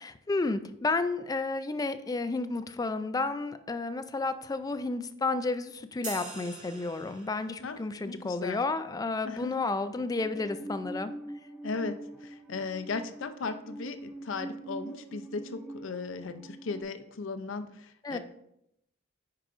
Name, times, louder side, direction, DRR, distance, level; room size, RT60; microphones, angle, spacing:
voice 1, 0.0-11.1 18.0-18.2, left 3 dB, 20° left, 11 dB, 0.3 m, -31 dB
sound 1, 6.0-7.7, right 3 dB, 40° right, 1.9 m, -43 dB
voice 2, 8.1-8.6 9.2-9.7 11.6-18.2, left 4 dB, 80° left, 9 dB, 0.6 m, -37 dB
Musical instrument, 10.0-16.8, right 1 dB, 5° right, 0.8 m, -44 dB
10.0 x 4.8 x 2.5 m, 0.78 s
head